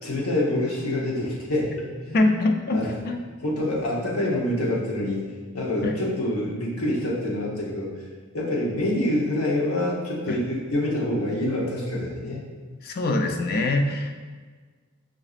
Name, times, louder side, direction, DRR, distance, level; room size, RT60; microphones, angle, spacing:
voice 1, 0.0-2.3 2.7-2.9 3.4-5.2 5.5-7.9 8.3-12.4, left 1 dB, 85° left, -4 dB, 0.9 m, -26 dB
voice 2, 2.1-3.2 5.8-6.0 10.3-10.4 12.8-14.2, left 2 dB, 45° left, 4 dB, 0.4 m, -24 dB
5.8 x 2.6 x 2.4 m, 1.5 s
head